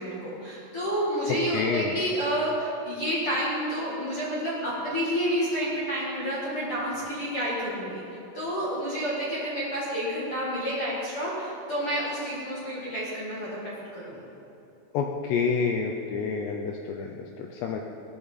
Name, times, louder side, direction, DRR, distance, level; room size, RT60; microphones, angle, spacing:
voice 1, 0.0-8.0 8.3-14.2, equal, 40° left, -8 dB, 2.2 m, -29 dB
voice 2, 1.5-1.9 14.9-17.8, left 5 dB, 80° left, 2 dB, 2.5 m, -28 dB
17.5 x 12.5 x 4.1 m, 2.9 s
omnidirectional pair, 5.7 m